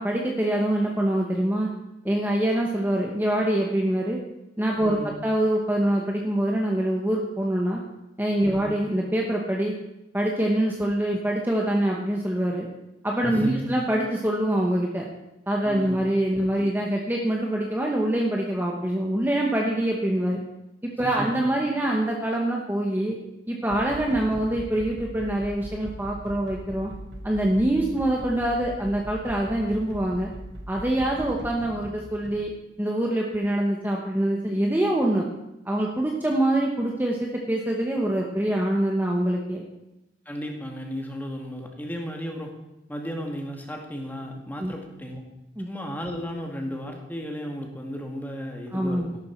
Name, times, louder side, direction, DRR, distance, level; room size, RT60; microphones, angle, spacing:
voice 1, 0.0-1.7 2.0-4.2 4.6-7.8 8.2-9.7 10.1-12.7 13.0-15.1 15.5-20.4 20.8-23.2 23.5-26.9 27.2-30.3 30.7-32.5 32.8-35.3 35.6-39.6 44.6-44.7 45.6-45.7 48.7-49.1, right 1 dB, 10° right, -1 dB, 1.2 m, -25 dB
voice 2, 4.8-5.1 8.5-8.8 13.3-13.7 15.7-16.0 21.0-21.3 40.3-42.5 42.9-45.2 45.6-49.1, equal, 10° left, 1 dB, 1.9 m, -34 dB
sound 1, 23.7-32.4, right 1 dB, 85° right, 1.4 m, -40 dB
13.5 x 11.5 x 4.6 m, 0.93 s
head